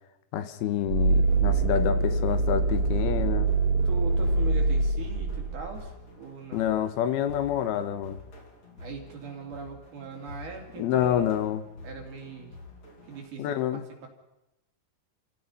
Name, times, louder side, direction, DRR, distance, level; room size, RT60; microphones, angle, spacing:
voice 1, 0.3-3.5 6.5-8.2 10.8-11.6 13.4-13.8, left 10 dB, 85° left, 10 dB, 3.0 m, -28 dB
sound 1, 0.9-5.8, right 3 dB, 40° right, 3.8 m, -24 dB
sound 2, 1.3-13.3, left 2 dB, 45° left, 4.9 m, -47 dB
voice 2, 3.9-6.7 8.8-11.3 11.8-12.5 13.1-14.1, right 5 dB, 55° right, 2 dB, 4.1 m, -40 dB
27.5 x 17.0 x 5.5 m, 0.92 s
omnidirectional pair, 4.5 m